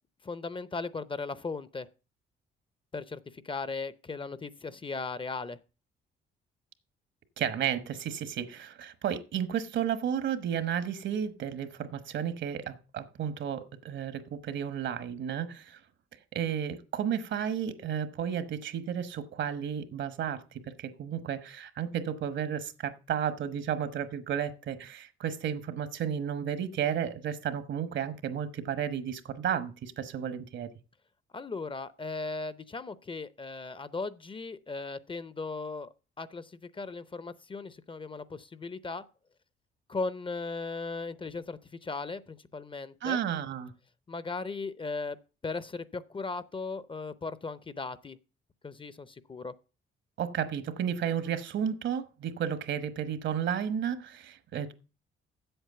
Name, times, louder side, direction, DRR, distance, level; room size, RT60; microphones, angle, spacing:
voice 1, 0.2-1.9 2.9-5.6 31.3-35.9 36.2-39.0 39.9-43.2 44.1-45.2 45.4-48.2 48.6-49.5, left 3 dB, 25° left, 0.6 m, -37 dB
voice 2, 7.4-15.8 16.3-20.4 20.8-30.7 43.0-43.7 50.2-54.7, right 8 dB, 65° right, 1.2 m, -32 dB
8.0 x 7.5 x 6.7 m
cardioid pair, 90°, 20 cm